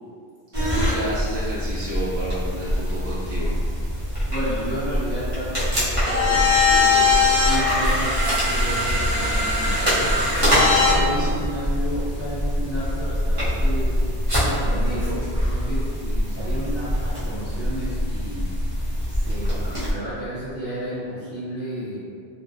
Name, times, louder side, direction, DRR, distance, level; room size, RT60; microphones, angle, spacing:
sound 1, 0.5-19.9, left 1 dB, 35° right, 0.7 m, -22 dB
voice 1, 0.7-3.6 10.7-11.3, right 1 dB, 65° right, -10 dB, 1.0 m, -31 dB
voice 2, 4.3-8.1 8.4-10.1 10.6-14.0 14.4-18.5 19.1-22.0, right 1 dB, 25° left, -13 dB, 1.0 m, -32 dB
2.5 x 2.1 x 2.5 m, 2.2 s
omnidirectional pair, 1.2 m